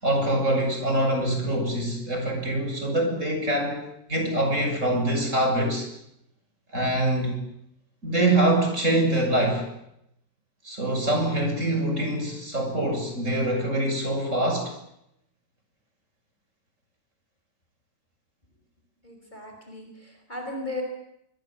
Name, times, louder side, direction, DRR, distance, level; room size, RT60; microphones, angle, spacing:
voice 1, 0.0-5.9 6.7-7.4 8.0-9.7 10.6-14.7, right 1 dB, 45° right, 4 dB, 6.9 m, -24 dB
voice 2, 19.0-20.8, left 2 dB, 25° left, 2 dB, 5.4 m, -36 dB
26.5 x 24.0 x 7.5 m, 0.78 s
omnidirectional pair, 1.9 m